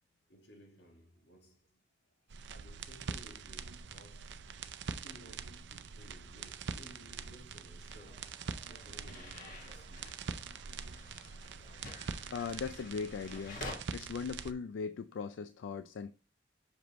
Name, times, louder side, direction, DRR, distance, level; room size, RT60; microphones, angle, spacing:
voice 1, 0.3-1.6 2.5-4.4 4.9-8.3 8.7-10.2, equal, 65° left, 1.6 m, -58 dB
sound 1, 2.3-14.5, right 5 dB, 70° right, 0.5 m, -44 dB
sound 2, 7.9-13.8, left 2 dB, 45° left, 1.3 m, -49 dB
voice 2, 12.3-16.1, left 5 dB, 80° left, 0.3 m, -39 dB
6.2 x 5.1 x 2.9 m
head